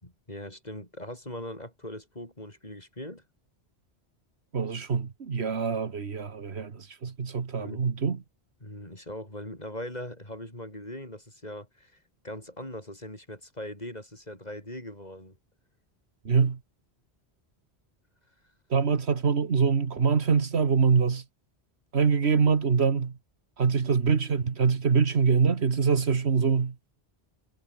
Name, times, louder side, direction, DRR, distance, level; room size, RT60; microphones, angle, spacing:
voice 1, 0.0-3.2 7.6-7.8 8.6-15.4, left 1 dB, 40° left, 6.7 m, -40 dB
voice 2, 4.5-8.2 16.3-16.6 18.7-21.2 21.9-23.1 23.6-26.8, right 5 dB, 80° right, 1.8 m, -24 dB
omnidirectional pair, 1.1 m